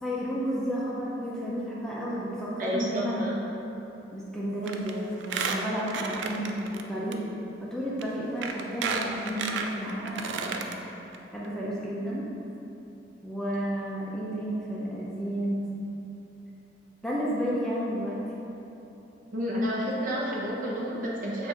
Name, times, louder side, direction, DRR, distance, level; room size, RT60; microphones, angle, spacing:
voice 1, 0.0-3.3 4.1-7.2 7.6-10.7 11.3-12.3 13.2-15.8 17.0-18.2, equal, 5° left, -7 dB, 0.5 m, -32 dB
voice 2, 2.6-3.4 19.3-21.5, equal, 50° right, -5 dB, 0.8 m, -30 dB
Squeak, 4.7-4.9 5.2-6.8 7.1-7.2 8.0-8.1 8.4-10.7 11.1-11.2 11.4-11.5, right 5 dB, 90° right, 0.3 m, -32 dB
6.7 x 2.5 x 2.9 m, 3.0 s
head